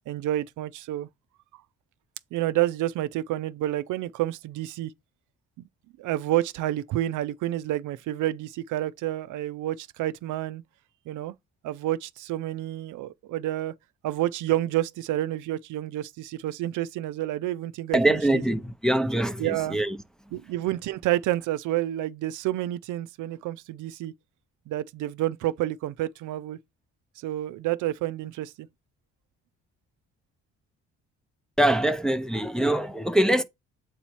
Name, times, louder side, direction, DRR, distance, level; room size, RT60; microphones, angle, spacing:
voice 1, 0.1-1.1 1.5-1.6 2.3-4.9 5.6-5.7 6.0-10.6 11.1-11.3 11.6-13.7 14.0-18.4 19.4-19.8 20.3-24.1 24.7-26.6 27.2-28.7, right 14 dB, 80° right, 0.5 m, -29 dB
voice 2, 17.9-20.0 31.6-33.4, right 1 dB, ahead, 0.6 m, -23 dB
8.0 x 2.8 x 4.4 m
cardioid pair, 90°, 30 cm